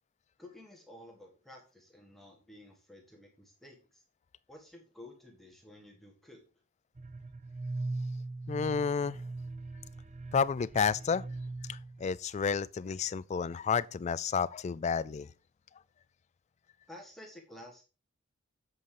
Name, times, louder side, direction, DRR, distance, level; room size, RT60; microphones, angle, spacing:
voice 1, 0.4-4.0 4.5-6.4 16.9-17.8, left 1 dB, ahead, 1.4 m, -52 dB
sound 1, 7.0-12.1, right 2 dB, 35° right, 0.6 m, -40 dB
voice 2, 8.5-9.2 10.3-11.3 11.7-15.3, left 6 dB, 30° left, 0.3 m, -31 dB
8.0 x 5.3 x 4.7 m
head